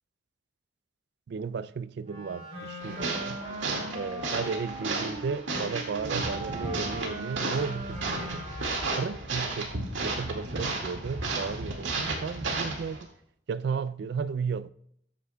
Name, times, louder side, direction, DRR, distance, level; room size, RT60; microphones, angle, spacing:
voice 1, 1.3-3.4 3.9-8.4 9.0-13.1 13.5-14.7, right 5 dB, 55° right, 0.3 m, -34 dB
Wind instrument woodwind instrument, 2.0-9.3, equal, 35° right, 3.1 m, -40 dB
sound 1, 2.8-13.0, right 3 dB, 75° right, 2.0 m, -33 dB
13.5 x 9.2 x 2.3 m
head